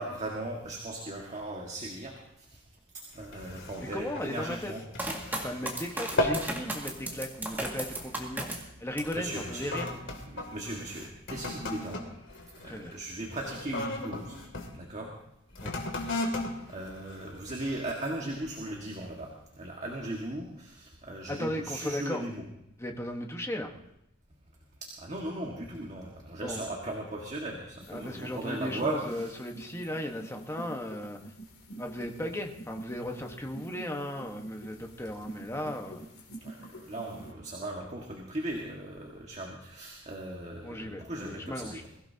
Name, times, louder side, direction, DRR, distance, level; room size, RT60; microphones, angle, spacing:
voice 1, 0.0-2.6 2.9-4.8 5.1-5.5 9.1-9.7 10.3-12.1 12.6-14.4 14.7-15.1 16.1-16.3 16.7-22.4 24.8-29.4 36.4-42.0, right 1 dB, 35° right, -1 dB, 1.8 m, -38 dB
sound 1, 3.1-5.7 6.0-6.6 6.9-7.2 7.9-8.2 8.9-14.7 15.5-17.8 18.4-18.5, left 1 dB, 60° left, 2.7 m, -36 dB
voice 2, 3.8-4.7 5.3-9.9 12.6-12.9 15.6-15.9 21.3-22.2 22.8-23.7 26.4-26.6 27.9-31.2 31.8-36.1 40.6-41.8, left 1 dB, 15° left, 3 dB, 1.4 m, -36 dB
sound 2, 5.0-9.3 9.7-10.3, right 1 dB, 10° right, 2.2 m, -36 dB
sound 3, 27.8-37.3, right 2 dB, 80° left, 3.0 m, -47 dB
22.5 x 16.0 x 2.9 m, 0.82 s
head